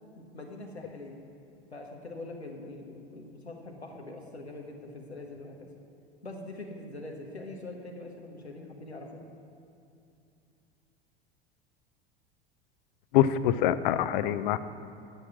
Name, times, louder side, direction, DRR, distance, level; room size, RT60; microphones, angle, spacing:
voice 1, 0.2-1.2 1.7-5.7 6.2-9.2, left 2 dB, 90° left, 1 dB, 1.0 m, -43 dB
voice 2, 13.1-14.6, left 11 dB, 50° left, 14 dB, 0.5 m, -24 dB
9.0 x 6.9 x 6.0 m, 2.7 s
figure-of-eight pair, 80°, 31 cm